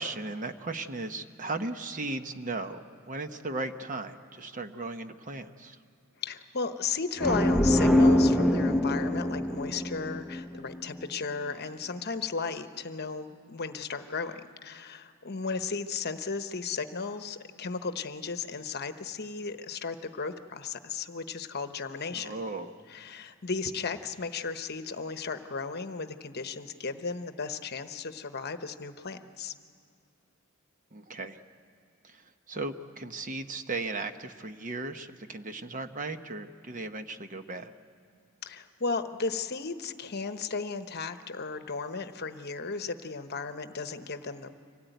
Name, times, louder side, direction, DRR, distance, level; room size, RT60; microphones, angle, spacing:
voice 1, 0.0-5.8 22.1-22.8 30.9-31.4 32.0-37.7, right 3 dB, 40° right, 8 dB, 0.9 m, -36 dB
voice 2, 6.2-22.4 22.9-29.5 38.4-44.5, left 4 dB, 50° left, 9 dB, 1.0 m, -35 dB
sound 1, 7.2-10.9, left 1 dB, ahead, 0.8 m, -24 dB
25.0 x 17.5 x 9.2 m, 2.4 s
head